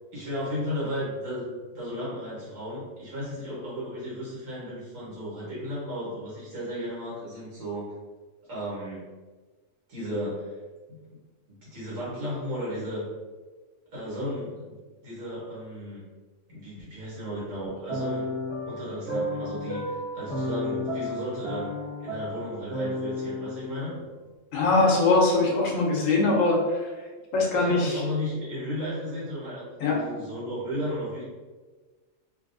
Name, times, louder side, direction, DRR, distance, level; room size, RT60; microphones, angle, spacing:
voice 1, 0.1-1.5 1.7-7.9 8.5-9.0 9.9-10.6 10.9-11.0 11.5-13.1 13.9-14.8 15.0-16.0 16.5-18.3 18.7-21.7 22.0-24.0 27.5-31.2, equal, 85° right, -8 dB, 1.8 m, -34 dB
sound 1, 17.9-24.2, left 1 dB, 60° right, 1.1 m, -33 dB
voice 2, 24.5-26.9 27.3-28.0 29.8-30.0, left 3 dB, 85° left, -1 dB, 1.1 m, -22 dB
3.2 x 2.6 x 2.6 m, 1.3 s
omnidirectional pair, 1.3 m